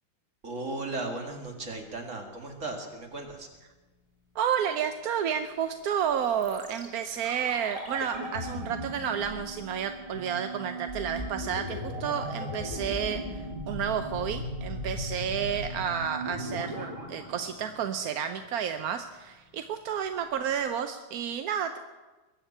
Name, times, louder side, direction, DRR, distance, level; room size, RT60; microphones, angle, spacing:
voice 1, 0.4-3.5, right 2 dB, 40° right, 3 dB, 2.4 m, -36 dB
voice 2, 4.3-21.8, right 8 dB, 65° right, 8 dB, 1.0 m, -31 dB
sound 1, 6.4-18.4 18.7-18.8, equal, 15° right, 3.3 m, -37 dB
22.0 x 7.3 x 8.6 m, 1.2 s
omnidirectional pair, 2.1 m